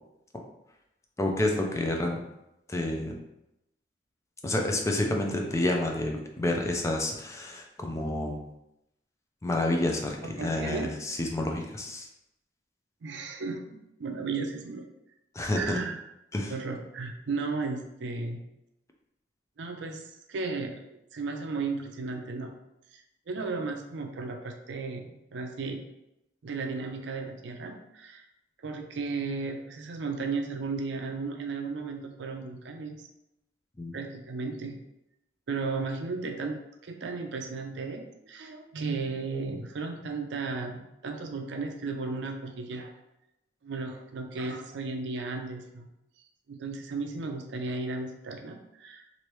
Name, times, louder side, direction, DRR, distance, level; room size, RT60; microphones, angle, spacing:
voice 1, 1.2-2.2 2.7-3.2 4.4-8.4 9.4-12.1 15.3-15.8 16.3-16.5 33.8-33.9, left 1 dB, 15° left, 2 dB, 0.4 m, -29 dB
voice 2, 10.2-10.9 13.0-14.9 15.5-16.0 16.5-18.4 19.6-20.8 21.1-22.5 22.9-25.8 26.4-28.2 28.6-33.0 33.9-34.7 35.5-42.9 43.6-45.9 46.5-49.0, right 4 dB, 70° right, 4 dB, 0.5 m, -35 dB
3.1 x 2.6 x 3.0 m, 0.87 s
head